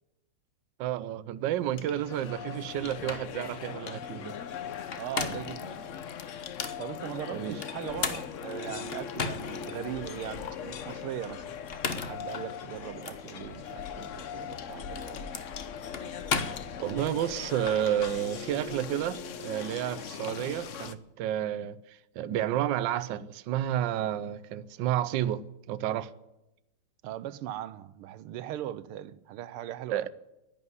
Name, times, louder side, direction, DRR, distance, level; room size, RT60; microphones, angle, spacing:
voice 1, 0.8-4.4 7.3-7.6 16.8-26.1 29.9-30.1, right 11 dB, 70° right, 1.2 m, -31 dB
sound 1, 1.5-20.9, left 7 dB, 75° left, 0.7 m, -40 dB
sound 2, 2.7-2.8 3.1-3.3 4.7-5.6 6.2-6.8 7.6-9.7 10.2-10.3 11.6-12.3 13.0-13.2 14.4-17.1, left 4 dB, 40° left, 0.9 m, -35 dB
voice 2, 5.0-5.9 6.8-11.4 12.1-15.2 27.0-30.1, right 12 dB, 85° right, 1.6 m, -39 dB
11.0 x 11.0 x 9.6 m
omnidirectional pair, 2.4 m